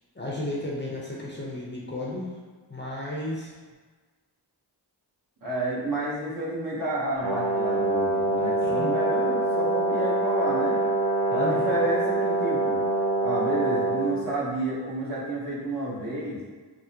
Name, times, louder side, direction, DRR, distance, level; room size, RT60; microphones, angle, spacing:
voice 1, 0.1-2.3 2.7-3.5 8.1-9.0 11.3-11.7, left 1 dB, 25° left, -5 dB, 0.7 m, -34 dB
voice 2, 5.4-10.8 11.3-12.8 13.2-16.4, right 1 dB, 50° right, -7 dB, 1.1 m, -30 dB
Brass instrument, 7.2-14.2, right 2 dB, 70° right, 0.7 m, -25 dB
3.6 x 2.0 x 2.8 m, 1.4 s
cardioid pair, 40°, 45 cm